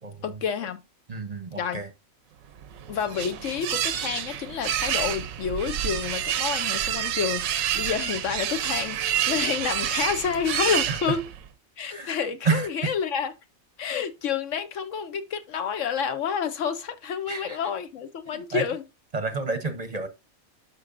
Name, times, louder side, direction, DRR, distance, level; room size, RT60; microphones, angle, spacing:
voice 1, 0.2-0.8 1.5-1.8 2.9-11.3 11.8-13.3 13.8-18.8, left 7 dB, 70° left, 1.0 m, -29 dB
voice 2, 1.1-1.9 10.7-11.2 11.8-12.1 12.4-12.9 17.3-17.6 18.3-18.6 19.1-20.1, right 4 dB, 35° right, 0.8 m, -30 dB
sound 1, 2.6-11.5, right 10 dB, 80° right, 1.1 m, -28 dB
12.5 x 4.5 x 2.5 m
omnidirectional pair, 1.4 m